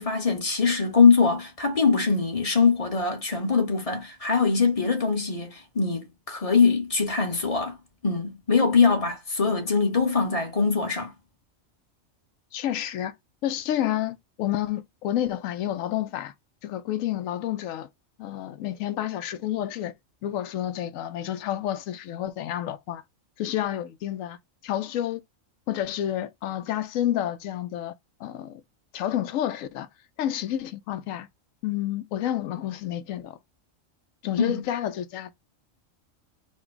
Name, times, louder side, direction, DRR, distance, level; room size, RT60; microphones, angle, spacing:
voice 1, 0.0-7.8 8.0-11.1 34.4-34.6, left 5 dB, 30° left, 1.0 m, -22 dB
voice 2, 12.5-13.1 13.4-16.3 16.6-17.9 18.2-19.9 20.2-23.0 23.4-24.4 24.6-25.2 25.7-27.9 28.2-28.6 28.9-29.9 30.2-31.3 31.6-33.4 34.2-35.3, left 12 dB, 80° left, 1.0 m, -29 dB
4.5 x 2.2 x 4.5 m
omnidirectional pair, 1.4 m